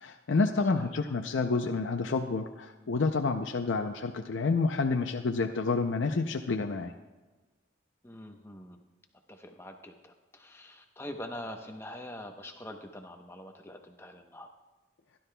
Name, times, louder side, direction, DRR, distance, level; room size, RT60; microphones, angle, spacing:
voice 1, 0.0-6.9, left 4 dB, 80° left, 5 dB, 0.5 m, -29 dB
voice 2, 8.0-8.8 9.3-14.5, left 1 dB, 15° left, 4 dB, 0.8 m, -44 dB
16.0 x 11.5 x 2.3 m, 1.2 s
head